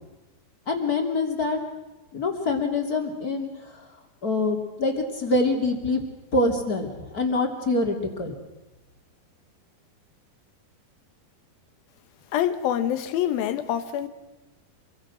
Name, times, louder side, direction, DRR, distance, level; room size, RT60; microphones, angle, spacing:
voice 1, 0.7-1.6 2.1-3.8 4.2-6.0 6.3-8.3, left 2 dB, 25° left, 2.8 m, -25 dB
voice 2, 12.3-14.1, left 10 dB, 80° left, 3.0 m, -25 dB
26.0 x 23.5 x 6.3 m
omnidirectional pair, 4.3 m